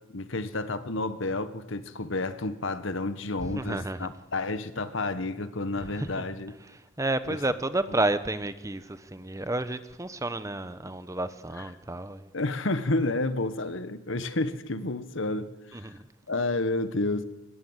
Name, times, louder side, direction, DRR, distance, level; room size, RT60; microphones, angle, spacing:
voice 1, 0.1-6.5 7.3-7.4 12.3-15.9 16.3-17.3, left 2 dB, 65° left, 1.5 m, -30 dB
voice 2, 3.4-4.1 5.8-6.2 6.7-12.3 15.7-16.0, right 2 dB, 15° right, 1.0 m, -31 dB
25.0 x 20.0 x 8.2 m
head